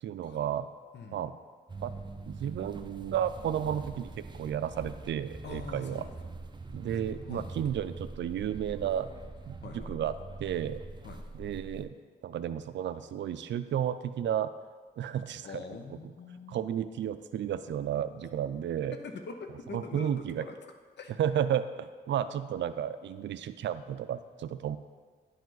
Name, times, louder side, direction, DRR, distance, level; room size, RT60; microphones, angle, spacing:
voice 1, 0.0-0.7 1.1-1.3 1.8-1.9 2.2-6.0 6.7-9.1 9.5-10.1 10.4-10.8 11.4-11.9 12.2-14.5 15.0-15.5 16.5-18.9 19.7-20.4 21.2-24.8, right 10 dB, 80° right, 13 dB, 0.4 m, -32 dB
sound 1, 1.7-11.9, right 3 dB, 25° right, 0.7 m, -43 dB
voice 2, 5.4-6.1 6.9-7.5 9.6-10.0 11.0-11.2 15.4-16.7 18.9-20.6 21.0-21.1, left 4 dB, 70° left, 6 dB, 0.8 m, -44 dB
9.9 x 5.0 x 3.9 m, 1.5 s
cardioid pair, 75°, 19 cm